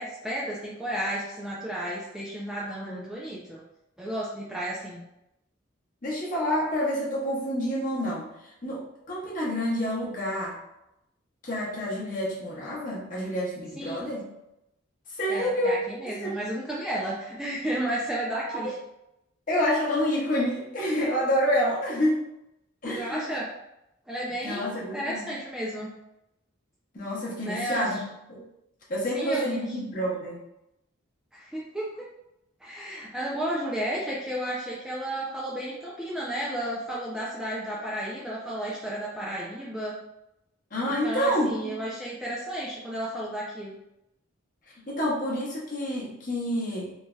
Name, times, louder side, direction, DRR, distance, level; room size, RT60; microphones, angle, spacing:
voice 1, 0.0-3.6 4.0-5.0 13.8-14.0 15.3-18.7 22.9-23.5 24.1-25.9 27.4-28.0 29.1-29.6 31.3-32.1 32.6-40.0 41.0-43.8, right 1 dB, 5° right, -7 dB, 0.3 m, -32 dB
voice 2, 6.0-10.6 11.4-14.3 15.1-16.4 18.5-18.7 19.5-22.2 22.8-23.3 24.4-25.3 26.9-28.0 28.3-28.4 28.9-30.4 40.7-41.8 44.9-46.9, equal, 40° left, -5 dB, 0.8 m, -28 dB
3.0 x 2.6 x 2.2 m, 0.86 s
head